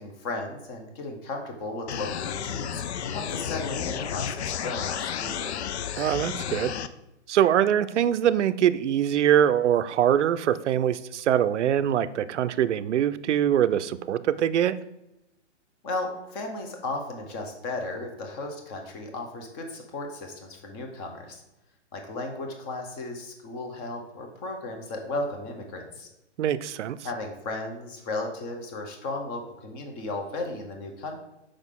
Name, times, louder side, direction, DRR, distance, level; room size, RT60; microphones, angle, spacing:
voice 1, 0.0-2.7 3.1-5.5 15.8-21.4 21.9-26.1 27.0-31.1, left 2 dB, 20° left, 3 dB, 0.8 m, -35 dB
sound 1, 1.9-6.9, left 8 dB, 65° left, 0.5 m, -32 dB
voice 2, 6.0-6.8 7.3-14.8 26.4-27.0, right 10 dB, 75° right, 14 dB, 0.5 m, -23 dB
6.2 x 5.0 x 3.7 m, 0.92 s
hypercardioid pair, 150°, 36 cm